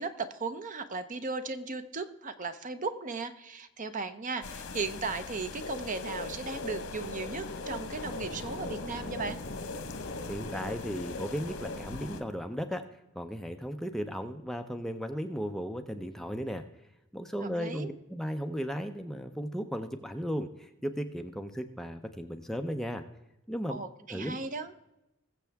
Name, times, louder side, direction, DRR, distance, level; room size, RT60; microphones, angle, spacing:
voice 1, 0.0-9.4 17.4-17.9 23.7-24.7, right 4 dB, 35° right, 10 dB, 0.7 m, -36 dB
sound 1, 4.4-12.2, left 3 dB, 85° left, 1.2 m, -41 dB
sound 2, 5.6-11.8, left 2 dB, 70° left, 5.2 m, -42 dB
voice 2, 10.3-12.8 13.1-16.6 17.1-23.0 23.5-23.8 24.1-24.4, equal, ahead, 5 dB, 0.6 m, -35 dB
20.5 x 7.5 x 3.5 m, 0.91 s
head